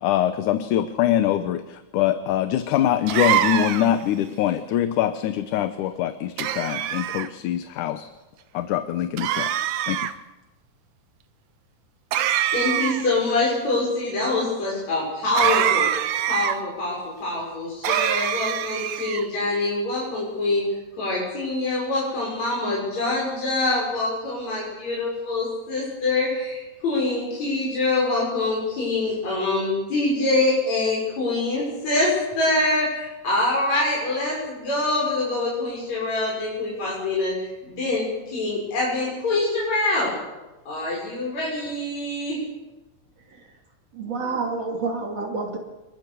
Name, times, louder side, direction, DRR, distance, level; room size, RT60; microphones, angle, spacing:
voice 1, 0.0-8.1 8.5-9.5 9.9-10.1, left 11 dB, 75° left, 10 dB, 2.4 m, -23 dB
sound 1, 3.1-4.0 6.4-7.3 9.2-10.1 12.1-13.2 15.4-16.6 17.8-19.3, right 11 dB, 75° right, 2.3 m, -24 dB
voice 2, 12.5-15.9 16.3-20.6 20.9-40.1 40.7-42.4, left 2 dB, 60° left, -5 dB, 7.5 m, -25 dB
voice 3, 43.9-45.6, right 4 dB, 55° right, 2 dB, 3.8 m, -28 dB
27.0 x 21.5 x 6.9 m, 1.1 s
omnidirectional pair, 3.7 m